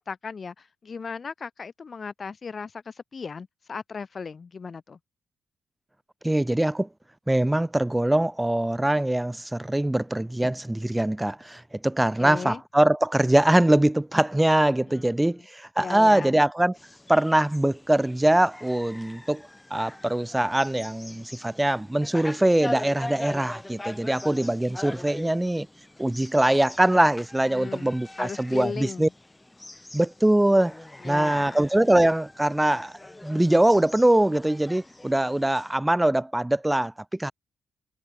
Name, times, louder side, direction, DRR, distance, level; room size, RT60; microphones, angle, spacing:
voice 1, 0.0-5.0 12.2-12.6 14.9-15.1 15.4-15.5 15.8-16.4 27.5-27.9 28.2-29.1 31.0-31.6, left 5 dB, 50° left, 1.5 m, -36 dB
voice 2, 6.2-6.9 7.3-16.7 17.1-19.4 19.7-25.7 26.0-29.1 29.9-30.7 31.0-32.9 33.2-36.9 37.2-37.3, right 1 dB, 10° right, 0.9 m, -22 dB
sound 1, 16.7-35.8, left 1 dB, 15° left, 2.4 m, -42 dB
hypercardioid pair, 45°, 0 cm